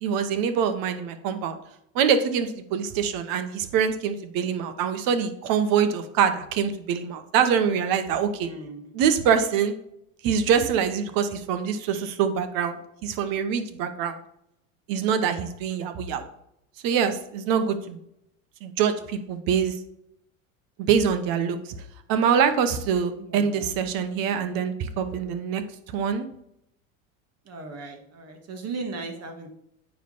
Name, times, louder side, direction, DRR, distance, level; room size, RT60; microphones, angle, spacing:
voice 1, 0.0-1.6 1.9-8.5 8.9-9.7 10.2-14.2 14.9-16.3 16.8-18.0 18.6-19.8 20.8-21.7 22.1-25.6 25.9-26.3, right 7 dB, 55° right, 9 dB, 1.1 m, -24 dB
voice 2, 8.4-8.9 23.2-23.6 27.5-29.5, right 3 dB, 40° right, 4 dB, 1.7 m, -37 dB
8.9 x 3.3 x 5.4 m, 0.75 s
hypercardioid pair, 85°, 40 cm